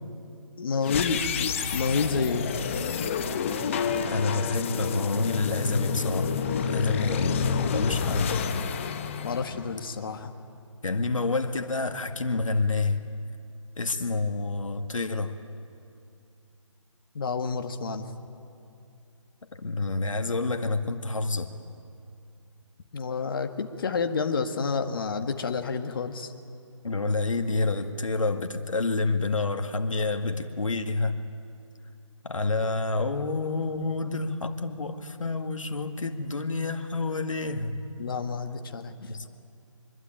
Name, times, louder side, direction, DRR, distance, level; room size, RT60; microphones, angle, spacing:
voice 1, 0.6-2.5 9.2-10.3 17.1-18.1 22.9-26.3 38.0-38.9, left 5 dB, 40° left, 6 dB, 1.7 m, -29 dB
sound 1, 0.8-10.0, left 6 dB, 25° left, 1.0 m, -29 dB
voice 2, 4.1-8.3 10.8-13.0 13.8-15.4 19.5-21.5 26.8-31.2 32.2-37.8 39.0-39.3, left 3 dB, 75° left, 5 dB, 2.1 m, -28 dB
24.5 x 22.0 x 9.2 m, 2.6 s
figure-of-eight pair, 160°, 17 cm